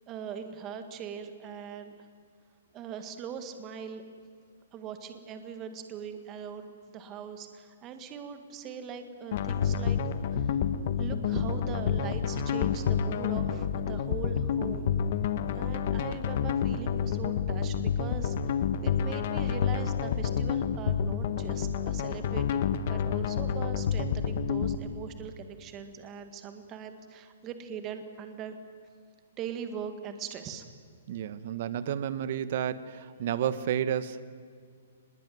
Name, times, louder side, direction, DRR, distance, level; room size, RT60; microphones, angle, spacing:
voice 1, 0.1-2.0 2.7-4.0 4.7-10.0 10.3-10.6 11.0-14.9 15.5-18.5 18.8-28.6 29.4-30.7, right 7 dB, 20° right, 8 dB, 1.8 m, -41 dB
sound 1, 9.3-24.8, left 7 dB, 45° left, 1.3 m, -29 dB
voice 2, 31.1-34.2, right 9 dB, 50° right, 14 dB, 1.2 m, -31 dB
24.0 x 21.0 x 9.4 m, 2.1 s
hypercardioid pair, 160°, 0 cm